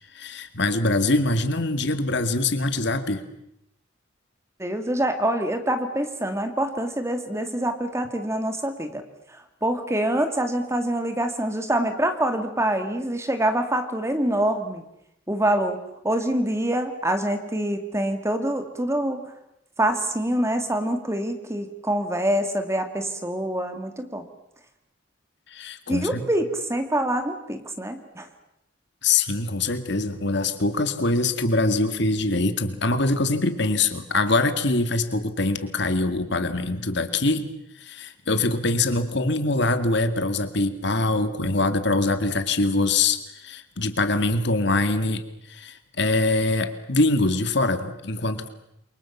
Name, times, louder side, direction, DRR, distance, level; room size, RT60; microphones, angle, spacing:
voice 1, 0.2-3.2 25.5-26.2 29.0-37.5 37.8-45.2 45.5-48.5, left 2 dB, 60° left, 9 dB, 2.1 m, -23 dB
voice 2, 4.6-9.0 9.3-14.8 15.3-15.8 16.0-19.3 19.8-24.3 25.9-28.3, right 1 dB, 15° right, 7 dB, 2.2 m, -25 dB
28.5 x 24.0 x 7.3 m, 0.81 s
head